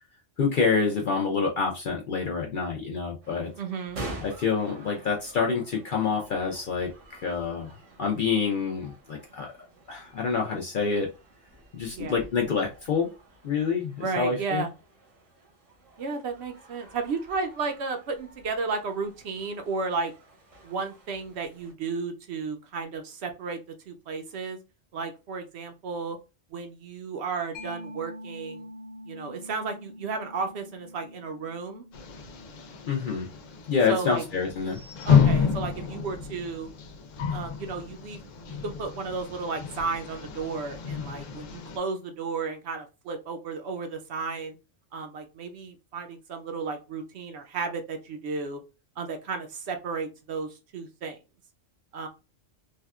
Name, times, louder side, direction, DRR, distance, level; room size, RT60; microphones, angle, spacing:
voice 1, 0.4-3.5 4.2-7.7 8.0-9.5 9.9-11.1 11.7-13.1 13.4-14.6 32.8-33.3 33.7-34.8, left 5 dB, 60° left, 0 dB, 0.5 m, -27 dB
sound 1, 3.2-21.7, right 2 dB, 85° right, 1.4 m, -48 dB
voice 2, 3.6-4.0 11.9-12.2 14.0-14.7 16.0-20.1 20.6-23.6 23.9-24.6 24.9-26.2 26.5-28.7 29.1-31.8 33.9-34.2 35.0-36.7 37.3-38.2 38.5-44.6 44.9-48.6 49.0-51.2 51.9-52.1, right 4 dB, 65° right, 6 dB, 0.8 m, -33 dB
Mallet percussion, 27.5-34.8, left 1 dB, 20° left, 0.6 m, -46 dB
sound 2, 31.9-41.8, left 6 dB, 85° left, 1.0 m, -29 dB
3.4 x 2.2 x 2.3 m, 0.29 s
omnidirectional pair, 1.3 m